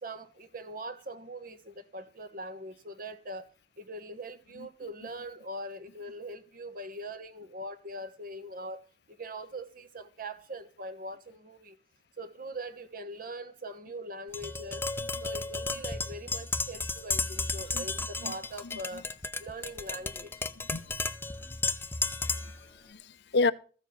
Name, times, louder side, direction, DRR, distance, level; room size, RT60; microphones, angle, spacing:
voice 1, 0.0-3.5 3.8-11.8 12.2-14.9 15.2-19.1 19.4-20.3, right 1 dB, 50° right, 1.2 m, -42 dB
Tap, 14.3-22.6, left 3 dB, 15° left, 0.5 m, -33 dB
voice 2, 22.2-23.5, left 3 dB, 65° left, 0.6 m, -31 dB
14.0 x 7.1 x 5.8 m
head